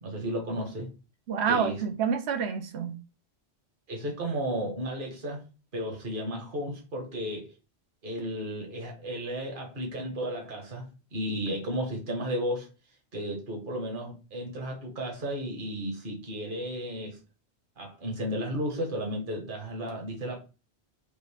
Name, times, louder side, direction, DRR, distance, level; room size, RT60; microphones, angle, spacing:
voice 1, 0.0-0.9 1.5-1.8 3.9-5.4 5.7-7.5 8.0-12.7 13.1-17.2 17.8-20.4, equal, 50° right, 1.4 m, -33 dB
voice 2, 1.3-3.0, right 6 dB, 75° right, 1.0 m, -28 dB
5.3 x 2.5 x 3.4 m
omnidirectional pair, 1.1 m